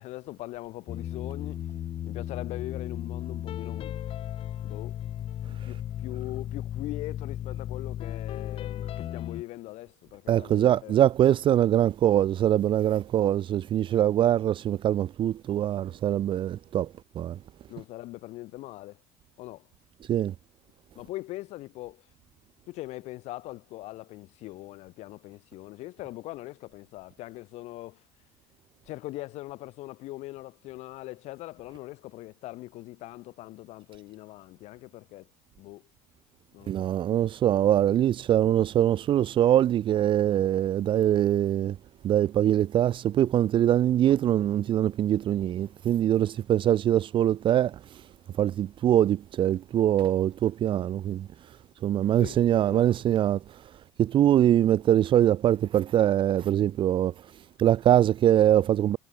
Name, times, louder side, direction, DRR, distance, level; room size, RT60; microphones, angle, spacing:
voice 1, 0.0-1.6 2.0-4.0 4.6-5.0 5.5-11.0 17.7-19.0 19.4-19.7 20.9-22.1 22.7-28.0 28.8-35.3 35.6-35.9 36.5-36.9 52.2-52.8, left 18 dB, 65° left, 4.3 m, -41 dB
sound 1, 0.9-9.4, left 11 dB, 50° left, 5.5 m, -35 dB
voice 2, 10.3-16.9 17.2-17.4 20.1-20.3 36.7-41.8 42.0-48.0 48.4-51.3 51.8-53.6 54.0-57.1 57.6-59.0, right 11 dB, 45° right, 0.7 m, -23 dB
supercardioid pair, 105°, 12 cm